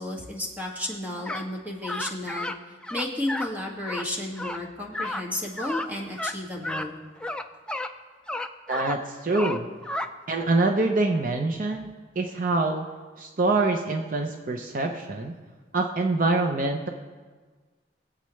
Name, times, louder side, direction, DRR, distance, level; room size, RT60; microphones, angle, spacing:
voice 1, 0.0-2.5 2.9-7.0, left 1 dB, 10° right, -2 dB, 2.1 m, -32 dB
sound 1, 1.2-1.5 1.8-2.6 2.8-3.5 3.8-4.1 4.4-4.6 4.9-5.2 5.6-5.9 6.1-6.3 6.6-6.9 7.2-7.9 8.3-9.0 9.3-10.1, left 1 dB, 5° left, 0.5 m, -32 dB
voice 2, 8.7-9.7 10.3-11.9 12.2-12.8 13.2-15.3 15.7-16.9, right 2 dB, 50° right, 3 dB, 0.8 m, -25 dB
22.0 x 8.2 x 3.2 m, 1.4 s
head